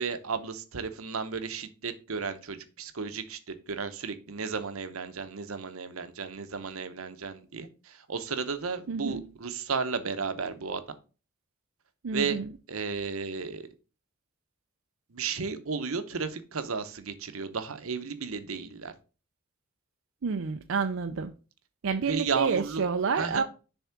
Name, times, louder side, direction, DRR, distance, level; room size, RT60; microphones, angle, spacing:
voice 1, 0.0-10.8 12.1-12.4 12.7-13.7 15.1-18.9 22.0-22.8 23.2-23.4, right 5 dB, 90° right, 0.9 m, -33 dB
voice 2, 8.9-9.2 12.0-12.5 20.2-21.3 21.8-23.4, right 5 dB, 70° right, 0.5 m, -29 dB
7.0 x 3.6 x 5.8 m
head